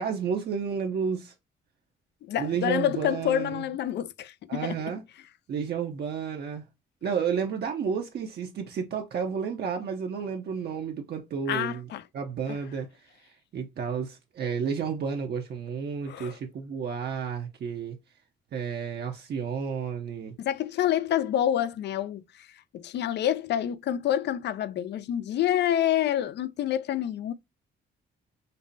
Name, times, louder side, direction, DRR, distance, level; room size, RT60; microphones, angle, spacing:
voice 1, 0.0-1.3 2.4-3.6 4.5-5.0 5.5-6.7 7.0-11.9 12.1-18.0 18.5-20.3, right 6 dB, 55° right, 0.7 m, -31 dB
voice 2, 2.2-4.8 11.5-12.0 12.5-12.6 16.1-16.4 20.4-22.5 22.7-27.3, left 11 dB, 60° left, 0.4 m, -27 dB
5.3 x 2.0 x 2.6 m
cardioid pair, 90°, 20 cm